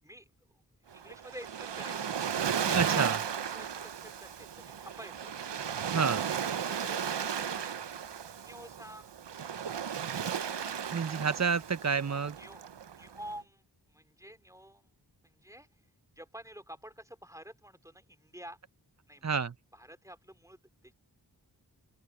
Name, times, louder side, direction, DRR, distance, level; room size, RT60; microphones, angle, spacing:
voice 1, 0.0-0.6 0.9-2.2 3.3-5.3 8.4-9.2 12.4-12.6 12.9-15.0 15.2-15.7 16.2-18.6 19.1-19.3 19.7-20.9, equal, 10° right, 4.2 m, -49 dB
Waves surf, 0.9-13.3, right 8 dB, 85° right, 0.8 m, -35 dB
voice 2, 2.7-3.2 5.9-6.2 10.9-12.4 19.2-19.5, right 5 dB, 40° right, 0.7 m, -29 dB
open air
wide cardioid pair, 45°, 41 cm